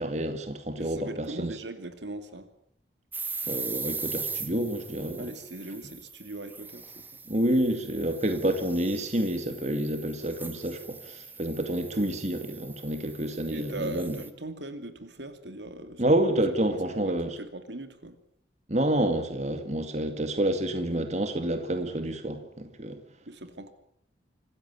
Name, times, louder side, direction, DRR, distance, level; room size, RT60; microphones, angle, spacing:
voice 1, 0.0-1.5 3.5-5.3 7.3-14.2 16.0-17.3 18.7-23.0, right 1 dB, 35° right, 2.3 m, -28 dB
voice 2, 0.8-2.5 5.2-7.2 13.5-16.2 16.6-18.2 23.3-23.7, right 2 dB, 70° right, 2.6 m, -40 dB
sound 1, 3.1-14.3, right 4 dB, 10° right, 1.3 m, -40 dB
26.5 x 15.0 x 9.7 m
head